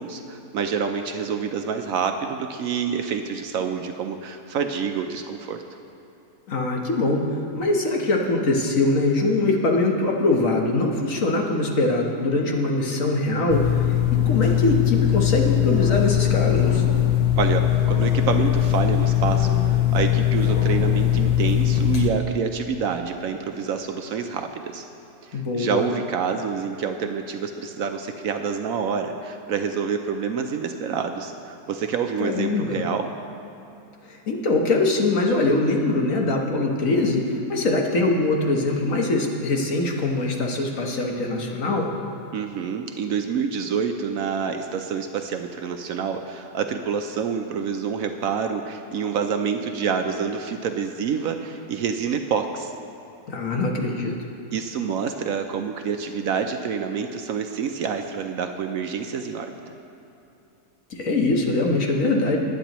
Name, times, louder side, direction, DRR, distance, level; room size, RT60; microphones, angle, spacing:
voice 1, 0.0-5.6 17.4-24.8 25.2-33.1 42.3-52.7 54.5-59.5, right 6 dB, 70° right, 6 dB, 0.9 m, -27 dB
voice 2, 6.5-16.8 25.3-25.8 32.2-32.8 34.0-41.9 53.3-54.1 60.9-62.4, left 2 dB, 60° left, 1 dB, 1.4 m, -23 dB
sound 1, 13.5-22.1, left 11 dB, 75° left, 1.3 m, -20 dB
19.5 x 9.1 x 3.0 m, 2.9 s
omnidirectional pair, 1.7 m